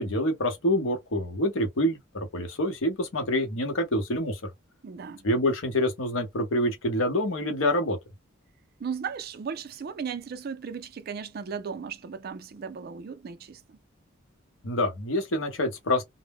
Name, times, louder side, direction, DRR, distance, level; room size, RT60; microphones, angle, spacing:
voice 1, 0.0-4.5 5.2-8.0 14.6-16.0, left 1 dB, 85° left, 0.8 m, -26 dB
voice 2, 4.8-5.2 8.8-13.8, right 6 dB, 50° right, 0.4 m, -36 dB
2.1 x 2.0 x 3.4 m
head